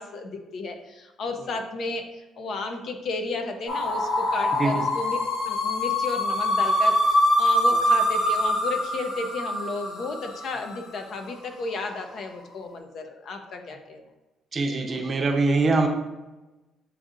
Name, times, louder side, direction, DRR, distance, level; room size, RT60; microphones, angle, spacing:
voice 1, 0.0-14.0, left 3 dB, 60° left, 5 dB, 0.6 m, -33 dB
sound 1, 3.7-10.6, left 1 dB, 80° left, 1.3 m, -24 dB
voice 2, 14.5-15.9, right 3 dB, 35° right, 4 dB, 0.6 m, -23 dB
7.4 x 2.7 x 2.5 m, 1.1 s
cardioid pair, 100°, 0 cm